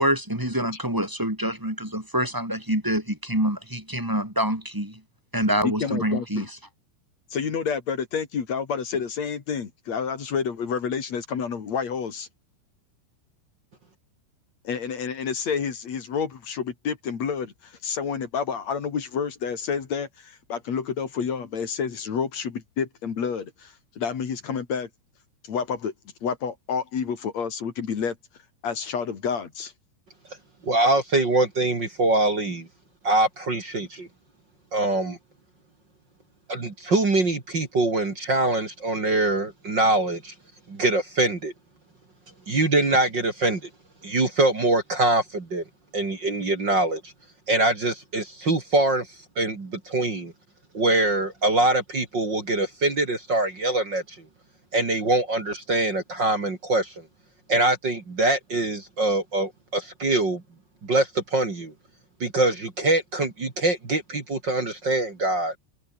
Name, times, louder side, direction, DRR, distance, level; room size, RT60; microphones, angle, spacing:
voice 1, 0.0-5.0 5.3-6.5, right 1 dB, 5° right, 3.1 m, -26 dB
voice 2, 5.6-6.5 7.3-12.3 14.6-24.9 25.5-25.9 26.2-28.2 28.6-29.7, left 6 dB, 40° left, 3.0 m, -29 dB
voice 3, 30.6-32.7 33.0-34.1 34.7-35.2 36.5-40.3 40.7-41.5 42.5-43.6 44.0-45.6 45.9-47.1 47.5-49.1 49.4-50.3 50.7-54.2 54.7-56.9 57.5-60.4 60.8-61.7 62.2-65.5, right 2 dB, 30° right, 2.5 m, -23 dB
omnidirectional pair, 5.8 m